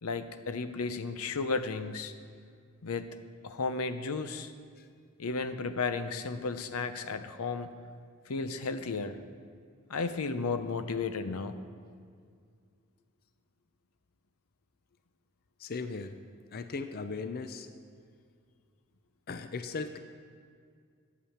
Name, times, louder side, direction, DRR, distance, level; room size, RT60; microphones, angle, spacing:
voice 1, 0.0-2.1 2.8-3.1 3.4-4.5 5.2-7.7 8.3-9.2 9.9-11.6, left 4 dB, 85° left, 10 dB, 0.7 m, -33 dB
voice 2, 15.6-16.1 16.5-17.7 19.3-20.0, left 4 dB, 45° left, 9 dB, 0.5 m, -37 dB
9.5 x 8.7 x 7.2 m, 2.2 s
head